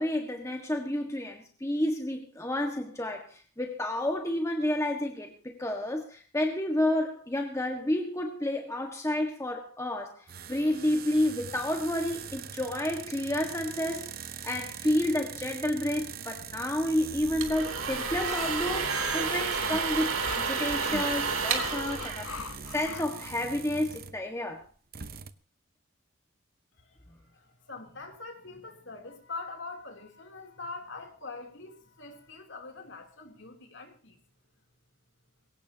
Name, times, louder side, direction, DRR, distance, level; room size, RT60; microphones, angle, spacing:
voice 1, 0.0-14.1 14.4-22.3 22.7-24.7, left 1 dB, 15° left, 3 dB, 1.6 m, -30 dB
sound 1, 10.3-24.2 24.6-24.7 24.9-25.3, right 7 dB, 45° right, 0.9 m, -43 dB
sound 2, 17.2-22.9, right 5 dB, 75° right, 2.9 m, -31 dB
sound 3, 18.3-23.3, left 5 dB, 90° left, 0.9 m, -42 dB
voice 2, 27.3-34.2, left 3 dB, 55° left, 4 dB, 3.3 m, -43 dB
21.5 x 18.0 x 2.9 m, 0.37 s
head